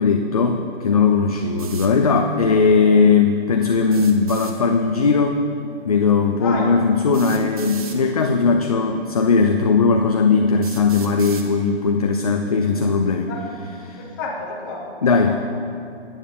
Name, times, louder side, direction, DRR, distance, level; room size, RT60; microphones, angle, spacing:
voice 1, 0.0-5.4 5.8-13.3 13.8-14.0 15.0-15.4, left 4 dB, 35° left, 4 dB, 0.4 m, -18 dB
sound 1, 1.6-1.9 3.8-4.6 6.0-6.1 7.1-8.0 9.0-9.1 9.8-9.9 10.6-11.5, right 5 dB, 35° right, 0.8 m, -37 dB
voice 2, 6.4-6.8 13.3-13.6 14.0-15.4, left 3 dB, 20° left, -2 dB, 1.0 m, -31 dB
12.0 x 8.8 x 3.5 m, 2.5 s
hypercardioid pair, 160°, 33 cm